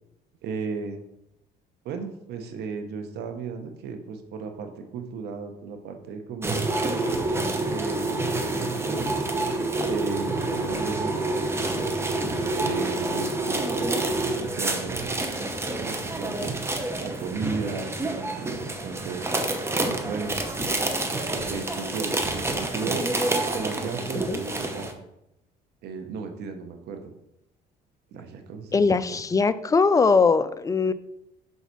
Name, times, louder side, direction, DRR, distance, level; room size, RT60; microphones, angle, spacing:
voice 1, 0.4-1.0 1.8-6.7 7.7-8.4 8.8-11.9 12.6-15.5 15.8-16.5 17.0-19.2 19.8-20.4 21.3-23.1 23.5-24.9 25.8-27.1 28.1-29.2, right 5 dB, 75° right, 5 dB, 1.0 m, -35 dB
sound 1, 6.4-24.9, right 2 dB, 15° right, 0.9 m, -28 dB
voice 2, 28.7-30.9, left 4 dB, 20° left, 13 dB, 0.4 m, -21 dB
5.6 x 4.0 x 6.0 m, 0.84 s
cardioid pair, 110°, 17 cm